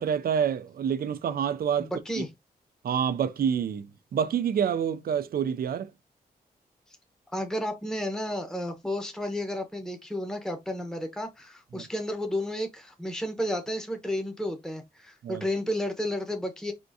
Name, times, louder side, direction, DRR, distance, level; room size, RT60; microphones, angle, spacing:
voice 1, 0.0-1.9 2.2-2.3 2.8-5.9 11.7-11.9 15.2-15.4, right 8 dB, 70° right, 0.5 m, -27 dB
voice 2, 1.8-2.3 7.3-16.7, left 1 dB, 5° left, 0.9 m, -32 dB
4.3 x 3.6 x 2.7 m
cardioid pair, 55°, 16 cm